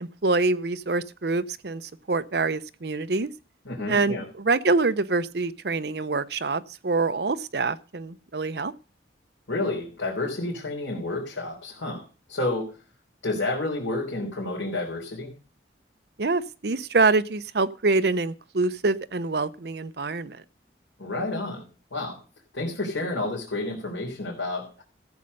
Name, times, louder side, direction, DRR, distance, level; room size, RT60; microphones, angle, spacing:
voice 1, 0.0-1.8 2.1-3.3 3.9-8.7 16.2-20.4, right 3 dB, 60° right, 0.7 m, -25 dB
voice 2, 3.6-4.3 9.5-12.7 13.2-15.3 21.0-22.2 22.5-24.8, left 2 dB, 90° left, 3.6 m, -30 dB
14.0 x 7.6 x 5.4 m
head